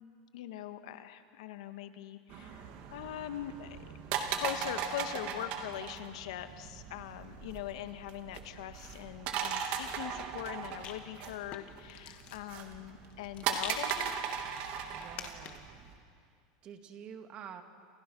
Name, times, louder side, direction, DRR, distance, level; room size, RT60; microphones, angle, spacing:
voice 1, 0.3-3.8 4.3-14.3, left 12 dB, 80° left, 9 dB, 1.7 m, -42 dB
sound 1, 2.3-15.9, right 7 dB, 50° right, 2.9 m, -38 dB
Rattle, 9.7-15.8, left 8 dB, 40° left, 2.2 m, -49 dB
voice 2, 14.9-15.7 16.6-17.6, right 8 dB, 35° right, 6 dB, 2.1 m, -48 dB
28.5 x 28.5 x 6.3 m, 2.2 s
supercardioid pair, 150°, 3 cm